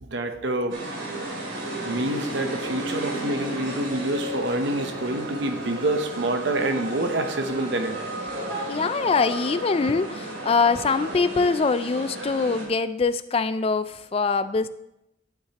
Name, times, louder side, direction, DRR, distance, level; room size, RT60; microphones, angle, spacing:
voice 1, 0.0-0.8 1.8-8.1, right 2 dB, 60° right, 7 dB, 0.8 m, -27 dB
sound 1, 0.7-12.6, right 1 dB, 75° right, 2.8 m, -33 dB
voice 2, 8.7-14.7, left 4 dB, 30° left, 13 dB, 0.3 m, -23 dB
11.5 x 8.6 x 2.9 m, 0.86 s
head